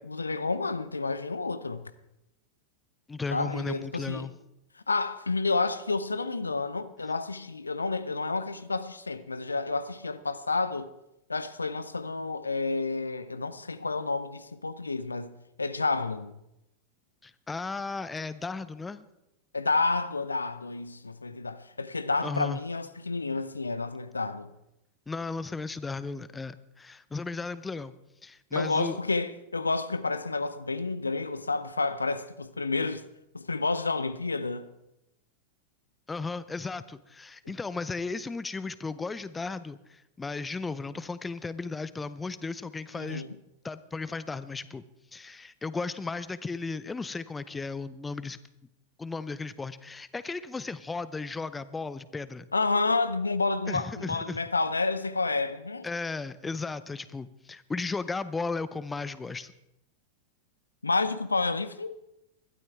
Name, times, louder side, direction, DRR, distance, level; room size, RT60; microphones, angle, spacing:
voice 1, 0.0-1.9 3.3-4.3 4.9-10.9 11.3-15.3 15.6-16.3 19.5-24.5 28.5-33.0 33.3-34.7 43.0-43.3 52.5-55.9 60.8-61.9, left 3 dB, 80° left, 0.6 m, -30 dB
voice 2, 3.1-4.3 17.2-19.1 22.2-22.6 25.1-27.9 28.2-29.0 36.1-43.3 43.6-44.8 45.1-48.4 49.0-52.5 53.7-54.4 55.8-59.5, left 4 dB, 10° left, 0.6 m, -35 dB
20.5 x 12.5 x 3.5 m
figure-of-eight pair, 90°, 0 cm